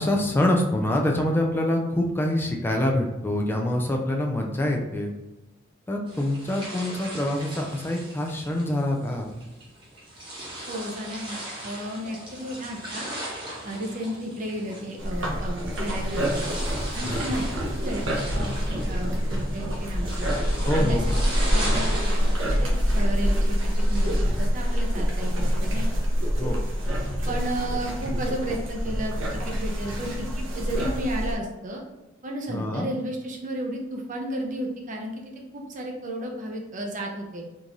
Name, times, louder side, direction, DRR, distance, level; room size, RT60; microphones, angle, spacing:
voice 1, 0.0-5.1 5.9-9.4 17.0-17.2 20.6-21.1 26.4-26.6 32.5-32.9, left 1 dB, 10° left, 1 dB, 0.3 m, -25 dB
sound 1, 6.1-24.3, right 1 dB, 25° right, 1.0 m, -38 dB
voice 2, 10.7-13.1 13.6-16.5 16.9-20.3 20.7-21.2 21.5-23.6 23.9-25.9 27.3-31.8 32.2-35.2 35.5-37.4, right 1 dB, 40° right, 1 dB, 0.7 m, -33 dB
sound 2, 15.0-31.3, equal, 80° right, 0.8 m, -26 dB
3.7 x 2.6 x 2.9 m, 0.99 s
head